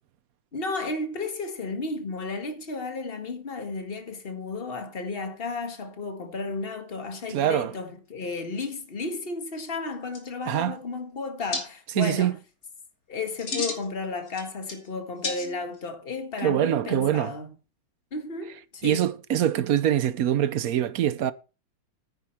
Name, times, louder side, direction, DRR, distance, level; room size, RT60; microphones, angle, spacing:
voice 1, 0.5-12.4 13.1-17.5 18.1-19.1, left 3 dB, 30° left, 1.8 m, -33 dB
voice 2, 7.3-7.7 10.5-10.8 12.0-12.3 16.4-17.3 18.8-21.3, right 11 dB, 65° right, 1.0 m, -24 dB
sound 1, 9.9-10.0 10.1-10.7 11.5-11.6 13.2-13.9 14.3-14.9 15.2-15.8, left 3 dB, 50° left, 3.1 m, -33 dB
9.8 x 9.7 x 4.5 m
omnidirectional pair, 2.0 m